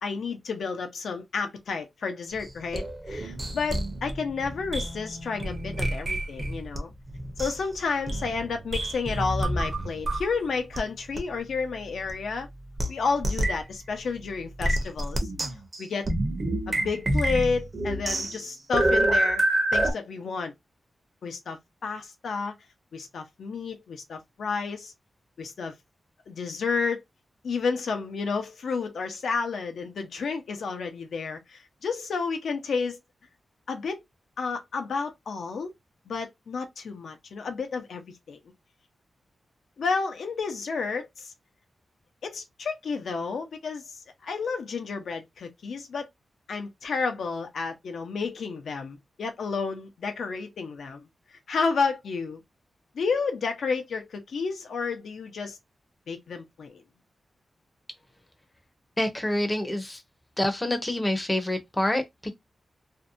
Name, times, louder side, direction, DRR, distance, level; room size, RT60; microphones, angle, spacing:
voice 1, 0.0-6.9 7.4-12.5 12.9-15.3 15.8-16.1 16.7-19.4 19.7-20.5 21.2-22.5 22.9-24.9 25.4-25.7 26.3-27.0 27.4-33.0 33.7-34.0 34.4-35.7 36.1-38.4 39.8-41.3 42.2-43.8 44.2-46.1 46.5-51.0 51.3-52.4 52.9-55.6 56.1-56.8, left 5 dB, 90° left, 0.6 m, -31 dB
sound 1, 2.3-6.8 7.1-10.4 10.7-10.8 11.2-11.3 12.1-12.2 12.8-12.9 13.2-13.6 14.6-19.9, right 1 dB, 30° right, 0.6 m, -28 dB
voice 2, 59.0-60.0 60.4-62.3, left 1 dB, 10° left, 0.5 m, -27 dB
2.6 x 2.1 x 2.5 m
wide cardioid pair, 125°, 0 cm